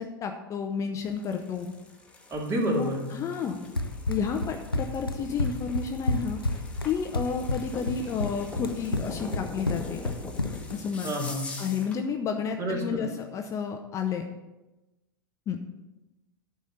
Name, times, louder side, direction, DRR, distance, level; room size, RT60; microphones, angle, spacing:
voice 1, 0.0-1.7 2.8-3.6 4.1-6.4 6.8-10.0 10.7-11.1 11.6-14.2 15.5-15.6, left 6 dB, 25° left, 4 dB, 0.7 m, -31 dB
sound 1, 1.0-12.0, left 3 dB, 10° left, 1.4 m, -43 dB
voice 2, 2.3-3.1 11.0-11.6 12.6-13.1, equal, 25° right, 0 dB, 2.3 m, -29 dB
Run, 3.8-10.8, left 2 dB, 85° left, 0.6 m, -30 dB
10.5 x 4.3 x 7.8 m, 1.1 s
figure-of-eight pair, 90°, 12 cm